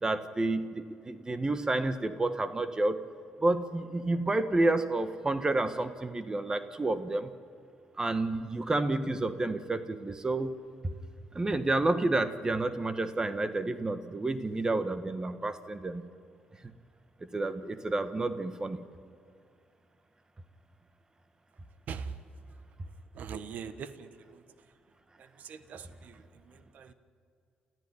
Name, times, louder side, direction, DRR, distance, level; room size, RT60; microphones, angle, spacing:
voice 1, 0.0-3.0 3.4-7.3 8.0-10.6 11.3-16.0 17.3-18.8, right 2 dB, 25° right, 11 dB, 1.5 m, -30 dB
voice 2, 23.1-24.4 25.2-26.9, right 6 dB, 65° right, 12 dB, 1.4 m, -42 dB
29.5 x 14.0 x 10.0 m, 2.3 s
supercardioid pair, 70°, 3 cm